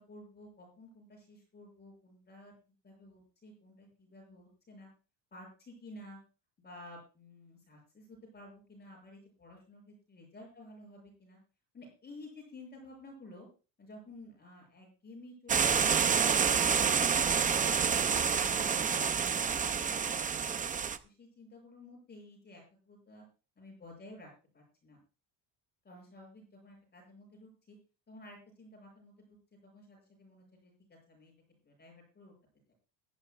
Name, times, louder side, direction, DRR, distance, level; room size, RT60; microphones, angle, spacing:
voice 1, 0.0-2.5 2.8-4.9 5.3-6.2 6.6-11.4 11.7-13.5 13.8-17.4 17.7-20.2 20.5-23.3 23.6-25.0 25.8-27.8 28.1-31.3 31.6-32.3, left 1 dB, 20° left, 1 dB, 7.3 m, -53 dB
sound 1, 15.5-21.0, right 6 dB, 15° right, 0.5 m, -28 dB
21.5 x 12.0 x 2.4 m, 0.34 s
cardioid pair, 160°, 50 cm